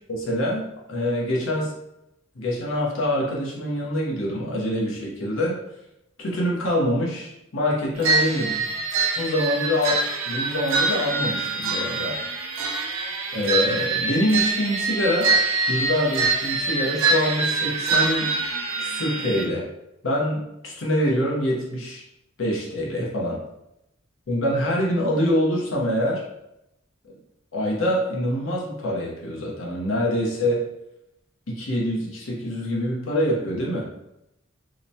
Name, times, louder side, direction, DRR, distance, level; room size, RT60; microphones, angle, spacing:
voice 1, 0.1-1.7 2.4-5.6 6.2-8.5 9.2-12.1 13.3-15.3 15.7-18.3 18.8-19.6 20.0-22.0 22.4-23.4 24.3-26.2 27.5-30.7 31.5-33.8, left 1 dB, 75° left, -3 dB, 0.8 m, -25 dB
sound 1, 8.0-19.4, right 3 dB, 80° right, 0.4 m, -24 dB
2.9 x 2.1 x 2.7 m, 0.86 s
head